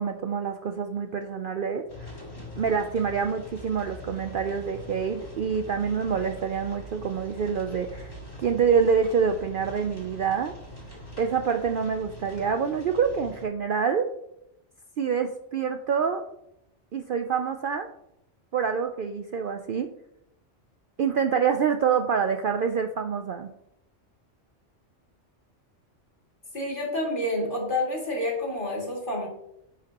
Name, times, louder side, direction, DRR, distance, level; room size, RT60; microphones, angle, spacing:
voice 1, 0.0-2.1 2.6-10.5 11.2-14.1 15.0-16.2 16.9-17.9 18.5-19.9 21.0-23.5, right 6 dB, 60° right, 6 dB, 0.6 m, -26 dB
sound 1, 1.9-13.4, left 1 dB, 20° left, 1.9 m, -43 dB
voice 2, 26.5-29.3, left 1 dB, 40° left, -3 dB, 2.5 m, -28 dB
10.0 x 5.8 x 2.9 m, 0.80 s
omnidirectional pair, 1.3 m